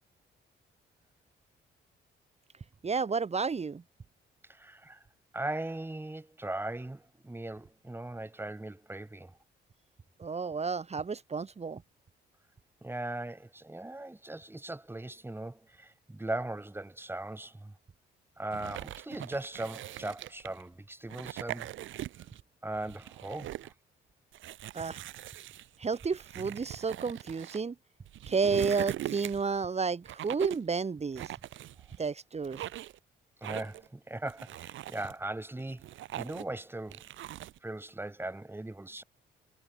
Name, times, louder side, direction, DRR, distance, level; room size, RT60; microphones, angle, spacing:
voice 1, 2.8-3.8 10.2-11.8 24.7-25.0 25.8-27.7 28.3-31.3 32.0-32.6, right 5 dB, 35° right, 2.5 m, -31 dB
voice 2, 4.5-5.0 5.3-9.3 12.8-17.7 18.4-21.7 22.6-23.7 33.4-35.8 36.1-37.0 37.6-39.0, right 2 dB, 10° right, 3.3 m, -39 dB
sound 1, 18.5-20.6 21.1-22.4 22.8-23.7 24.3-27.6 28.1-29.6 30.0-30.7 31.2-32.1 32.4-33.0 33.4-33.9 34.3-35.1 35.6-36.6 36.9-37.6, right 13 dB, 80° right, 1.6 m, -41 dB
cardioid pair, 90°, 20 cm